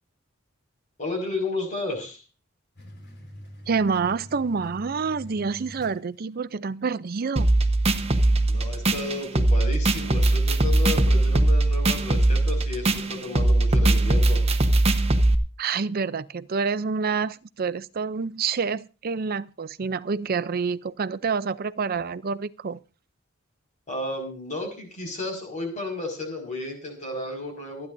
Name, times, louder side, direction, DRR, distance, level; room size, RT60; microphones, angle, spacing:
voice 1, 1.0-2.2 8.5-14.4 23.9-27.9, left 2 dB, 40° left, 5.5 m, -33 dB
sound 1, 2.8-6.6, equal, 60° left, 4.6 m, -44 dB
voice 2, 3.7-7.5 15.6-22.8, right 5 dB, 50° right, 0.5 m, -27 dB
sound 2, 7.4-15.3, right 2 dB, 30° right, 1.1 m, -20 dB
28.0 x 9.8 x 2.7 m
head